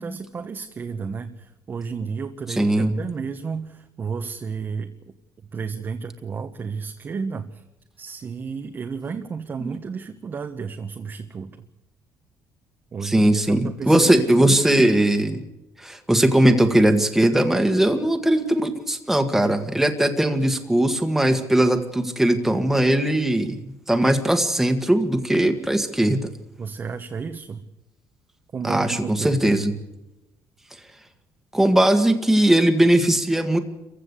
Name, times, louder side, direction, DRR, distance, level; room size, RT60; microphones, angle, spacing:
voice 1, 0.0-4.9 5.5-7.6 8.0-11.6 12.9-14.6 26.6-27.7 28.5-29.4, right 5 dB, 35° right, 6 dB, 1.3 m, -32 dB
voice 2, 2.6-3.0 13.0-15.4 15.8-26.3 28.6-29.7 31.5-33.6, right 1 dB, 5° right, 5 dB, 1.8 m, -19 dB
26.5 x 15.5 x 8.3 m, 0.99 s
cardioid pair, 115°, 6 cm